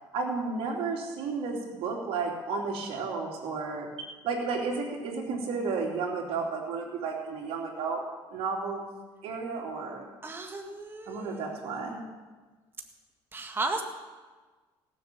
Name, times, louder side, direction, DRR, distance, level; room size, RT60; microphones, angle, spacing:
voice 1, 0.1-3.9 4.2-8.0 8.3-8.9 9.2-10.1 11.1-12.0, right 4 dB, 70° right, -1 dB, 3.3 m, -32 dB
voice 2, 10.2-11.5 13.3-13.8, right 3 dB, 20° right, 3 dB, 1.6 m, -34 dB
17.5 x 7.8 x 7.1 m, 1.3 s
cardioid pair, 95°, 10 cm